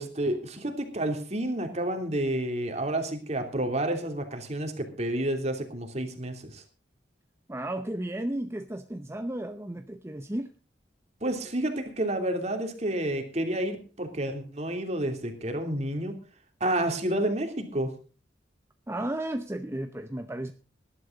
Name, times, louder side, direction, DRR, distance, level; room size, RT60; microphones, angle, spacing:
voice 1, 0.0-6.6 11.2-16.2 16.6-17.9, right 1 dB, 40° right, 5 dB, 3.0 m, -30 dB
voice 2, 7.5-10.5 18.9-20.5, right 1 dB, 15° right, 8 dB, 0.7 m, -33 dB
19.5 x 11.5 x 3.9 m, 0.35 s
head